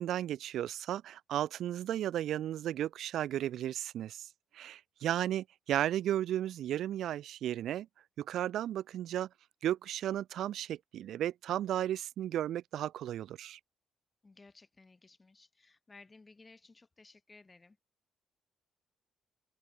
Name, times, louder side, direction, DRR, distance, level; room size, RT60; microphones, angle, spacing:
voice 1, 0.0-4.3 4.5-7.9 8.2-9.3 9.6-13.6, right 11 dB, 75° right, 0.9 m, -34 dB
voice 2, 14.2-17.8, left 3 dB, 25° left, 7.7 m, -58 dB
cardioid pair, 90°, 0 cm